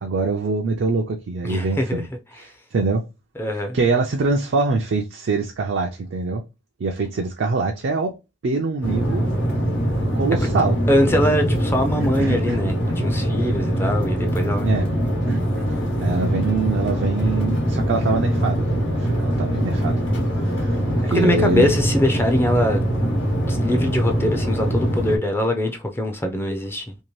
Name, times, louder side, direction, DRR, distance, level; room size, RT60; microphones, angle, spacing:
voice 1, 0.0-2.1 2.7-3.0 3.7-6.4 6.8-8.2 8.4-9.3 10.1-10.8 11.9-12.6 14.6-14.9 15.3-15.4 16.0-20.0 20.4-20.8 21.1-21.7, right 3 dB, 70° right, 0.4 m, -24 dB
voice 2, 1.4-2.0 3.4-3.8 10.4-10.5 10.9-14.8 21.1-22.8 23.3-27.0, left 1 dB, 10° left, 0.4 m, -22 dB
sound 1, 8.8-25.2, equal, 90° left, 1.1 m, -22 dB
2.7 x 2.5 x 3.1 m
head